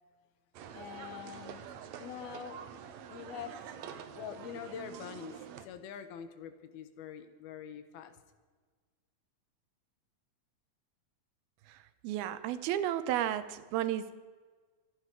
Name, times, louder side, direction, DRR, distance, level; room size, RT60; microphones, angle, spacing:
sound 1, 0.5-5.7, right 8 dB, 65° right, 1.9 m, -46 dB
voice 1, 0.7-1.6 2.0-2.6 3.1-3.6 4.2-8.2, left 8 dB, 85° left, 10 dB, 3.1 m, -44 dB
voice 2, 12.0-14.2, right 12 dB, 85° right, 13 dB, 2.8 m, -33 dB
25.5 x 10.0 x 4.7 m, 1.5 s
omnidirectional pair, 4.2 m